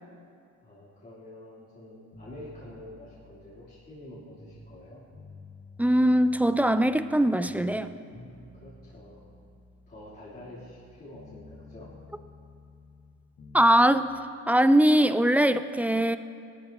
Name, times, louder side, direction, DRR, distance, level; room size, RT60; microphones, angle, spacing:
voice 1, 0.6-5.0 8.5-9.3 9.9-11.9, left 1 dB, 30° left, -12 dB, 3.6 m, -47 dB
sound 1, 2.1-4.8 5.1-7.2 7.4-10.9 11.1-13.7, left 2 dB, 60° left, 1.9 m, -51 dB
voice 2, 5.8-7.9 13.5-14.1 14.5-16.2, right 1 dB, 5° right, 11 dB, 0.4 m, -21 dB
17.0 x 12.5 x 3.0 m, 2.4 s
cardioid pair, 90°, 30 cm